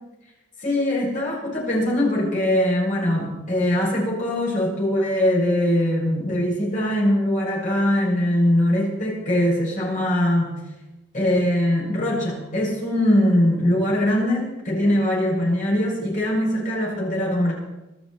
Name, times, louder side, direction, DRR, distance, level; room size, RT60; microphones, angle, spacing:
voice 1, 0.6-10.5 11.1-17.5, left 1 dB, 40° left, -3 dB, 7.1 m, -21 dB
26.0 x 11.5 x 4.4 m, 0.97 s
head